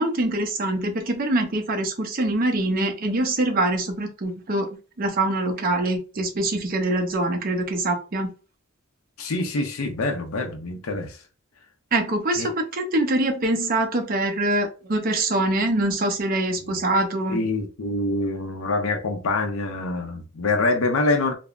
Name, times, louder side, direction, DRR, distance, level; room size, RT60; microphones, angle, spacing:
voice 1, 0.0-4.7 5.0-8.3 11.9-17.4, right 2 dB, 45° right, 0.5 m, -24 dB
voice 2, 9.2-11.2 12.4-12.5 16.6-16.8 17.3-21.3, left 2 dB, 85° left, 0.5 m, -25 dB
3.2 x 2.0 x 2.4 m
head